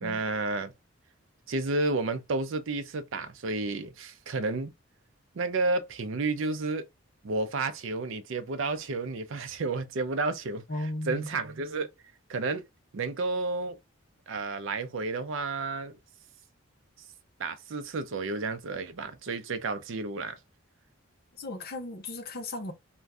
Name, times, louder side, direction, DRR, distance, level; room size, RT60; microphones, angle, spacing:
voice 1, 0.0-0.7 1.5-4.7 5.3-6.8 7.2-10.6 11.1-11.9 12.3-12.6 12.9-13.8 14.3-15.9 17.4-20.4, right 3 dB, 65° right, 0.5 m, -31 dB
voice 2, 10.7-11.3 21.4-22.7, left 1 dB, 45° left, 0.6 m, -35 dB
2.5 x 2.3 x 3.2 m
head